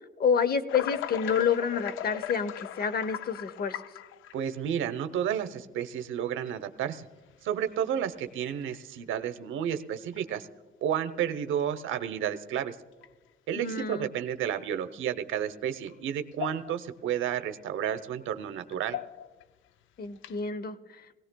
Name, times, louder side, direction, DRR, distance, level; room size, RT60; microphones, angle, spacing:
voice 1, 0.2-3.8 13.5-14.1 20.0-21.0, left 6 dB, 50° left, 14 dB, 0.8 m, -28 dB
sound 1, 0.7-4.5 5.3-5.4 6.5-6.6 7.3-7.6 8.0-8.1 8.6-8.8 10.1-10.2 13.0-13.1 13.8-14.5 15.9-16.0 16.3-16.9 17.3-17.4 18.7-19.4 20.2-20.5, left 11 dB, 80° left, 0.5 m, -38 dB
voice 2, 4.3-7.1 7.4-10.5 10.8-12.8 13.5-19.0, right 9 dB, 80° right, 9 dB, 0.8 m, -31 dB
20.0 x 17.5 x 2.2 m, 1.4 s
cardioid pair, 90°, 20 cm